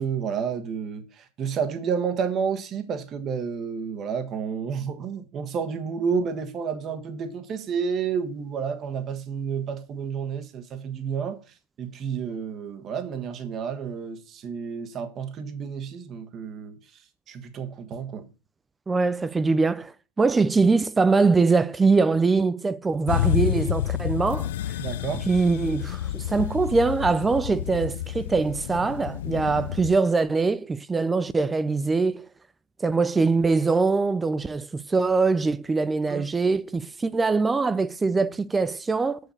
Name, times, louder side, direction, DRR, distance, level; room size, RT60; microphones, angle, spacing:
voice 1, 0.0-11.4 11.8-16.8 17.3-18.3 24.8-25.3 36.1-36.2, right 6 dB, 30° right, 1.3 m, -30 dB
voice 2, 18.9-24.5 25.3-32.3 32.8-39.2, right 4 dB, 10° right, 0.4 m, -23 dB
sound 1, 23.1-30.0, left 12 dB, 70° left, 0.4 m, -29 dB
6.6 x 6.5 x 7.1 m
supercardioid pair, 145°, 0 cm